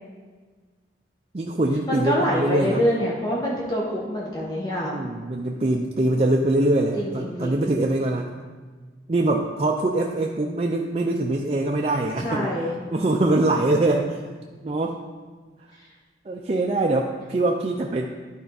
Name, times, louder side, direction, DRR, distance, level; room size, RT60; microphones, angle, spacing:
voice 1, 1.3-2.8 4.8-8.3 9.1-12.5 12.9-14.2 14.6-15.0 16.3-18.1, right 2 dB, 35° right, 0 dB, 0.4 m, -23 dB
voice 2, 1.9-5.1 6.9-7.7 12.2-12.7, equal, 25° left, -5 dB, 1.0 m, -26 dB
11.5 x 4.4 x 4.0 m, 1.4 s
head